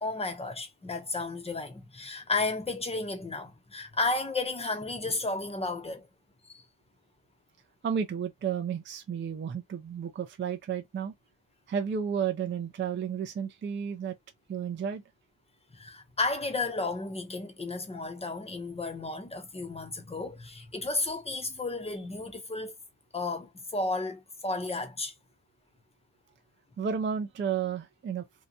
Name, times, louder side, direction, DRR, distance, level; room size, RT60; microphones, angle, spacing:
voice 1, 0.0-6.1 15.7-22.7 23.1-25.1, left 3 dB, 15° left, 0.7 m, -33 dB
voice 2, 7.8-11.1 11.7-14.2 14.5-15.0 26.8-28.3, right 7 dB, 25° right, 0.4 m, -32 dB
2.8 x 2.2 x 2.6 m
cardioid pair, 105°, 49 cm